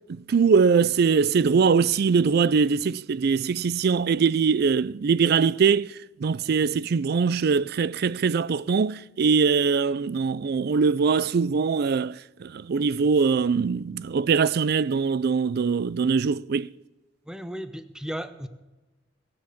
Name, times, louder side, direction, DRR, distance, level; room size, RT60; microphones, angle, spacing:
voice 1, 0.1-5.9 6.2-16.7, right 5 dB, 55° right, 0.4 m, -22 dB
voice 2, 17.3-18.5, equal, 5° right, 0.8 m, -35 dB
18.0 x 7.7 x 8.1 m
head